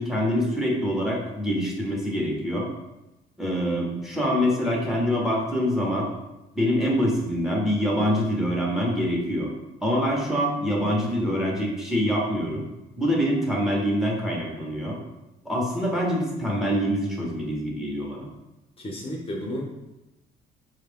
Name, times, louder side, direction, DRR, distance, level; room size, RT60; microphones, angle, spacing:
voice 1, 0.0-2.7 3.4-6.1 6.5-9.5 9.8-12.7 13.0-15.0 15.4-18.3, equal, ahead, -3 dB, 1.0 m, -25 dB
voice 2, 18.8-19.6, equal, 35° left, -1 dB, 0.8 m, -32 dB
5.1 x 2.4 x 3.5 m, 0.97 s
cardioid pair, 110°, 17 cm